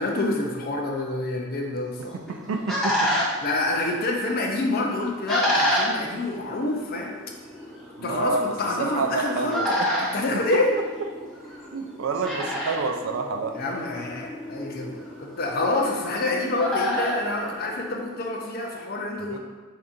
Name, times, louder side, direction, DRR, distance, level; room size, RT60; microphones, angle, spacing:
voice 1, 0.0-2.2 3.4-7.2 8.0-9.8 10.1-10.7 13.5-19.4, left 2 dB, 45° left, 0 dB, 0.5 m, -27 dB
sound 1, 2.0-18.3, equal, 5° left, 0.6 m, -30 dB
voice 2, 2.1-3.1 8.0-9.7 10.3-10.6 11.7-13.5 19.3-19.4, right 4 dB, 80° right, 4 dB, 0.4 m, -28 dB
2.8 x 2.5 x 3.6 m, 1.4 s
head